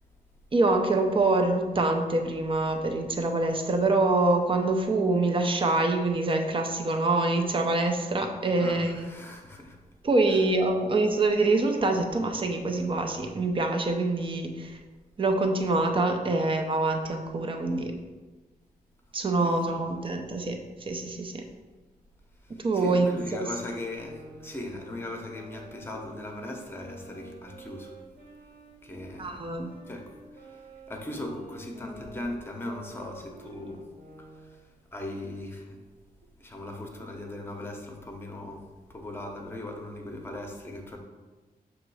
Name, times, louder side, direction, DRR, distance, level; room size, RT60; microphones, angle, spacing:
voice 1, 0.5-9.2 10.0-14.8 15.2-17.9 19.1-21.4 22.6-23.6 29.2-29.8, right 2 dB, 35° right, 4 dB, 0.7 m, -25 dB
voice 2, 8.6-9.8 10.3-10.4 19.4-19.6 22.7-27.9 28.8-29.5 29.9-30.6 30.9-33.9 34.9-35.8 36.4-38.6 38.9-41.0, left 1 dB, 15° left, 2 dB, 0.9 m, -38 dB
sound 1, 23.8-29.2 29.7-34.6, right 1 dB, 85° right, 1.8 m, -49 dB
6.5 x 3.0 x 4.8 m, 1.3 s
wide cardioid pair, 140°, 15 cm